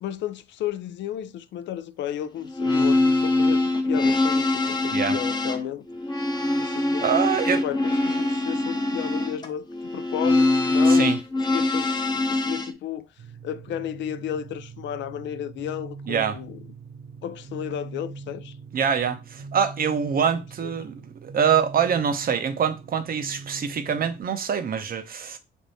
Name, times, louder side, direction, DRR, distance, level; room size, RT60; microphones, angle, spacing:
voice 1, 0.0-5.8 6.6-7.1 7.6-9.7 9.9-11.1 11.5-13.1 13.4-16.6 17.2-18.5 20.6-20.7, left 10 dB, 65° left, 0.4 m, -33 dB
sound 1, 2.4-12.7, left 2 dB, 20° left, 0.7 m, -23 dB
voice 2, 7.0-7.6 10.9-11.2 16.1-16.4 18.7-20.9 21.2-25.4, right 7 dB, 50° right, 0.7 m, -24 dB
sound 2, 13.2-24.2, right 4 dB, 75° right, 0.8 m, -42 dB
3.5 x 2.6 x 4.0 m
cardioid pair, 90°, 20 cm